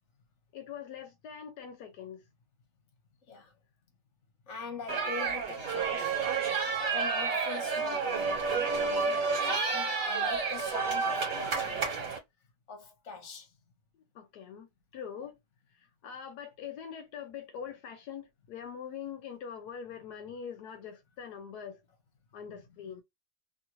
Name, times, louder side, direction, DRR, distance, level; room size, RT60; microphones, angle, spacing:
voice 1, 0.5-2.2 13.9-14.7 14.9-15.4 16.0-21.8 22.3-23.0, left 7 dB, 80° left, 1.1 m, -43 dB
voice 2, 3.2-3.5 4.4-6.2 6.9-11.9 12.7-13.6 15.2-15.3 22.4-23.0, left 5 dB, 50° left, 1.2 m, -44 dB
sound 1, 4.9-12.2, right 5 dB, 60° right, 1.6 m, -30 dB
3.0 x 2.4 x 3.0 m
omnidirectional pair, 1.7 m